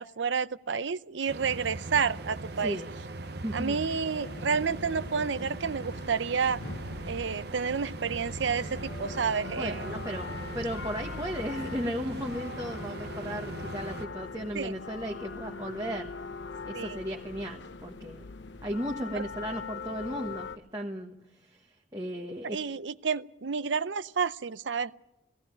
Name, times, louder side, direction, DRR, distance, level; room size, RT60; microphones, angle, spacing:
voice 1, 0.0-2.8 3.5-6.6 7.1-10.0 14.5-14.7 16.7-17.0 19.1-19.2 22.4-24.9, right 6 dB, 75° right, 15 dB, 0.7 m, -30 dB
sound 1, 1.3-14.1, right 2 dB, 60° right, 1.0 m, -40 dB
voice 2, 3.2-3.8 9.6-10.3 10.5-16.1 16.6-18.3 18.6-21.7 21.9-22.6, equal, 20° right, 0 dB, 1.3 m, -35 dB
sound 2, 4.2-20.6, left 4 dB, 70° left, 0.8 m, -42 dB
17.5 x 16.0 x 10.0 m, 0.85 s
head